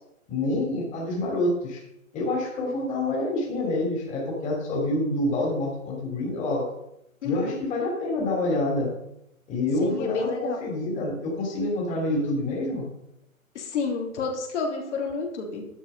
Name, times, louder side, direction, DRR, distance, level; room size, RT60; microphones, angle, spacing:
voice 1, 0.3-1.8 2.1-6.7 7.2-9.0 9.5-12.9, left 2 dB, 15° left, -2 dB, 3.1 m, -27 dB
voice 2, 7.2-7.6 9.8-10.6 13.6-15.7, left 4 dB, 55° left, 0 dB, 3.6 m, -30 dB
12.0 x 7.9 x 5.7 m, 0.82 s
hypercardioid pair, 150°, 42 cm